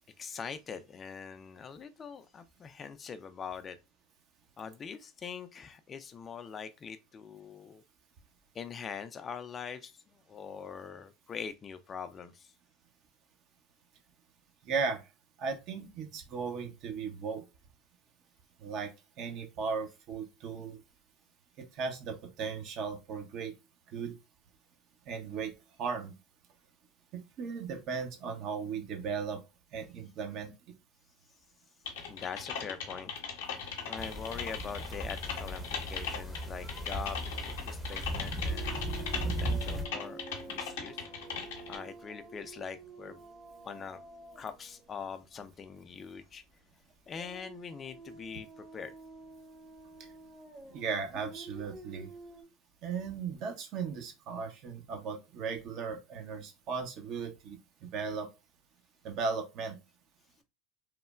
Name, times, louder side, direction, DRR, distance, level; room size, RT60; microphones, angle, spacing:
voice 1, 0.2-3.8 4.6-7.8 8.5-9.9 10.3-12.5 32.1-33.1 33.8-41.0 41.7-43.2 43.6-44.0 44.4-46.4 47.1-48.9, left 6 dB, 35° left, 0.3 m, -43 dB
voice 2, 14.6-15.0 15.4-17.4 18.6-18.9 19.2-20.8 21.6-23.5 23.9-24.2 25.1-25.5 25.8-26.1 27.1-29.4 29.7-30.5 50.7-52.1 52.8-58.3 59.0-59.8, right 5 dB, 55° right, 0.6 m, -36 dB
Typing, 31.9-41.8, left 6 dB, 75° left, 0.6 m, -39 dB
sound 1, 34.0-39.9, right 1 dB, 5° right, 0.6 m, -37 dB
sound 2, 38.5-45.9 46.2-46.4 47.1-52.4, right 4 dB, 35° right, 1.0 m, -49 dB
3.1 x 2.0 x 2.3 m
hypercardioid pair, 80°, 0 cm